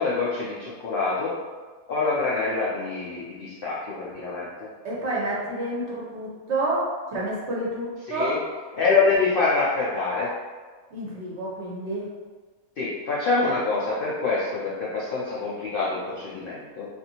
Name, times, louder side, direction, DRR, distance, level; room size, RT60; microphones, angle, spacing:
voice 1, 0.0-1.3 1.9-4.7 8.1-8.3 8.8-10.3 12.8-16.9, left 4 dB, 80° left, -6 dB, 0.5 m, -25 dB
voice 2, 4.8-8.3 10.9-12.1, right 1 dB, 60° right, -5 dB, 0.8 m, -29 dB
2.6 x 2.5 x 2.8 m, 1.4 s
omnidirectional pair, 1.5 m